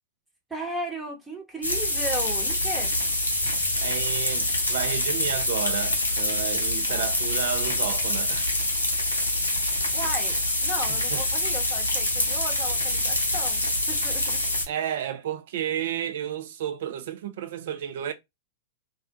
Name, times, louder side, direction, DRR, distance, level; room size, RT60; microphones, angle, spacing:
voice 1, 0.5-2.9 6.9-7.1 9.9-14.4, right 1 dB, 10° right, 0.9 m, -35 dB
sound 1, 1.6-14.6, left 1 dB, 90° left, 0.7 m, -26 dB
voice 2, 3.8-8.7 10.9-11.2 14.1-14.3 14.7-18.1, right 10 dB, 60° right, 0.3 m, -32 dB
2.5 x 2.1 x 2.5 m
figure-of-eight pair, 100°, 0 cm